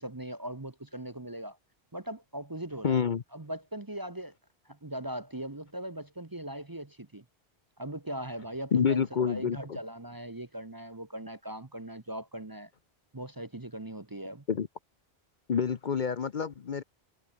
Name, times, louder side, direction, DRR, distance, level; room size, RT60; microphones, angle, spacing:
voice 1, 0.0-1.6 1.9-3.0 3.3-4.3 4.6-7.2 7.8-12.7 13.1-14.4, right 1 dB, 20° right, 1.0 m, -40 dB
voice 2, 2.8-3.2 8.7-9.6 14.5-14.7 15.5-16.8, left 6 dB, 50° left, 0.9 m, -27 dB
omnidirectional pair, 1.1 m